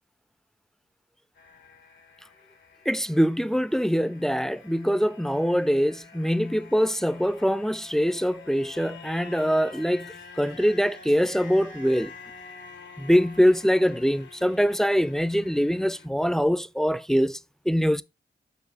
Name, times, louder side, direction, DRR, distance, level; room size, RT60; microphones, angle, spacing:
sound 1, 1.4-16.1, left 5 dB, 90° left, 1.7 m, -48 dB
voice 1, 2.9-12.1 13.0-17.4 17.7-18.0, equal, ahead, 0.5 m, -23 dB
8.2 x 2.7 x 5.2 m
cardioid pair, 45°, 19 cm